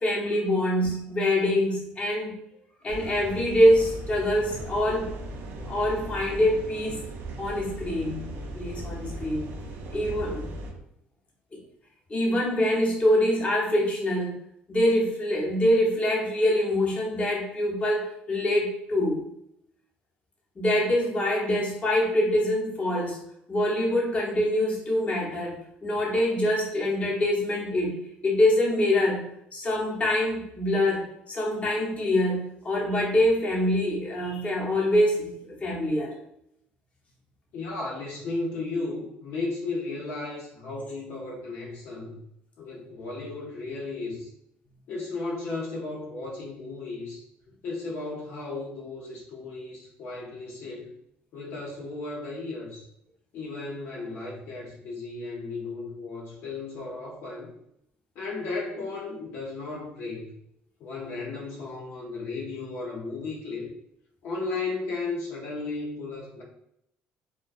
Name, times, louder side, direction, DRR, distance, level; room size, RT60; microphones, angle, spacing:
voice 1, 0.0-2.4 2.8-5.1 5.6-7.0 7.4-8.2 8.5-9.5 9.9-10.5 12.1-14.3 14.7-19.2 20.6-23.2 23.5-25.6 25.8-28.0 28.2-29.2 29.5-36.1, left 1 dB, 30° left, -3 dB, 0.8 m, -24 dB
sound 1, 2.9-10.7, right 1 dB, 65° right, 0.5 m, -38 dB
sound 2, 5.0-10.8, right 1 dB, 30° right, 0.8 m, -46 dB
voice 2, 37.5-42.2 42.6-44.3 44.9-47.2 47.6-50.9 51.3-52.9 53.3-57.5 58.2-60.3 60.8-63.7 64.2-66.4, left 3 dB, 65° left, -3 dB, 0.7 m, -35 dB
2.2 x 2.2 x 2.5 m, 0.75 s
supercardioid pair, 90°, 4 cm